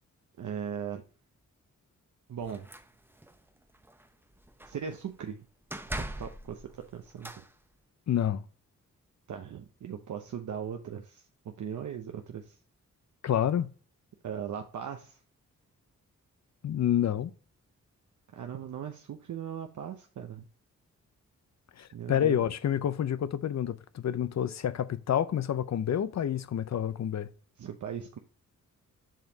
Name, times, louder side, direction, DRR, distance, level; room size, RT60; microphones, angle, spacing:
voice 1, 0.4-1.0 2.3-2.7 4.6-5.4 6.0-7.4 9.3-12.6 14.2-15.2 18.3-20.5 21.9-22.5 27.6-28.2, right 8 dB, 65° right, 0.8 m, -39 dB
sound 1, 2.4-3.4 3.7-4.1 4.3-5.0 5.7-7.5, right 1 dB, 5° right, 0.7 m, -41 dB
voice 2, 8.1-8.4 13.2-13.7 16.6-17.3 21.8-27.3, left 10 dB, 60° left, 0.6 m, -28 dB
7.5 x 5.1 x 2.8 m
cardioid pair, 65°, 32 cm